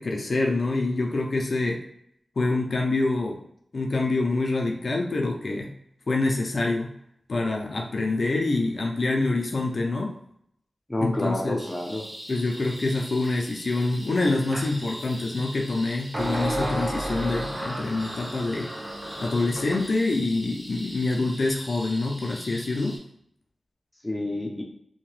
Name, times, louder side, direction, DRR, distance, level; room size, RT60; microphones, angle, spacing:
voice 1, 0.0-1.8 2.4-3.4 3.7-5.7 6.1-6.9 7.3-10.1 11.0-11.6 12.3-18.7 19.2-23.0, left 2 dB, 60° left, 0 dB, 0.4 m, -26 dB
voice 2, 10.9-12.1 24.0-24.6, left 1 dB, 15° left, 0 dB, 0.6 m, -29 dB
sound 1, 11.6-23.0, equal, 30° right, 1.2 m, -42 dB
sound 2, 14.5-14.7 16.1-19.9, right 1 dB, 45° right, 0.6 m, -32 dB
2.7 x 2.1 x 3.1 m, 0.72 s
wide cardioid pair, 85°, 0 cm